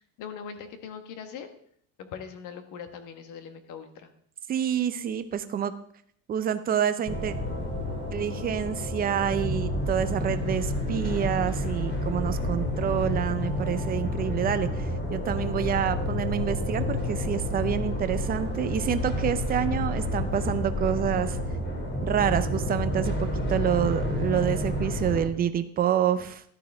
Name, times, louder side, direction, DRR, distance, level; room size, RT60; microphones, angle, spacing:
voice 1, 0.0-1.5 2.0-4.1, left 7 dB, 45° left, 8 dB, 1.4 m, -41 dB
voice 2, 4.5-5.7 6.3-7.3 8.1-21.4 22.0-26.4, right 9 dB, 20° right, 11 dB, 0.5 m, -28 dB
sound 1, 7.1-25.2, left 1 dB, 25° left, 2.7 m, -29 dB
13.0 x 12.0 x 3.4 m, 0.64 s
cardioid pair, 165°, 44 cm